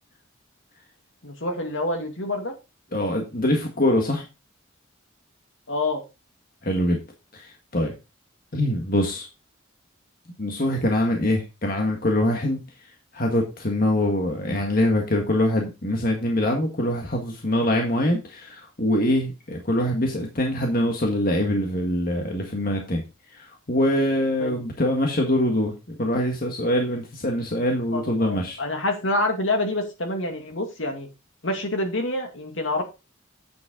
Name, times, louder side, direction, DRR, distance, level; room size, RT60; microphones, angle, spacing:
voice 1, 1.2-2.5 5.7-6.0 24.4-24.6 27.9-31.1 31.4-32.8, left 2 dB, 65° left, 4 dB, 2.4 m, -27 dB
voice 2, 2.9-4.3 6.6-7.0 7.3-7.9 8.5-9.3 10.4-12.6 13.1-23.0 23.3-28.6, left 1 dB, 45° left, 1 dB, 1.7 m, -24 dB
8.7 x 7.7 x 3.8 m, 0.27 s
head